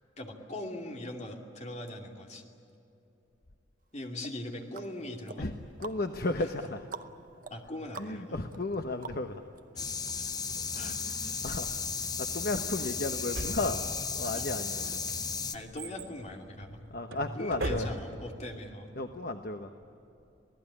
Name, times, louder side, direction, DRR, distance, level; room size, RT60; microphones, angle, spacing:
voice 1, 0.2-2.4 3.9-5.5 6.4-6.5 7.5-8.3 9.7-9.8 10.1-10.2 10.7-11.4 14.2-14.4 14.9-15.0 15.5-16.8 17.3-18.9, left 1 dB, 35° left, 2 dB, 2.6 m, -41 dB
sound 1, 4.2-9.6 10.1-10.2, right 4 dB, 45° right, 0.9 m, -48 dB
voice 2, 5.8-6.8 8.0-9.4 11.4-11.7 12.2-13.8 14.1-15.1 16.9-17.9 19.0-19.7, left 2 dB, 50° left, 6 dB, 1.0 m, -34 dB
sound 2, 9.8-15.6, left 5 dB, 20° left, 0.9 m, -34 dB
Drawer open or close, 13.3-14.2 14.8-18.3 18.6-18.7, right 1 dB, 80° right, 3.0 m, -38 dB
27.0 x 18.0 x 9.9 m, 2.9 s
head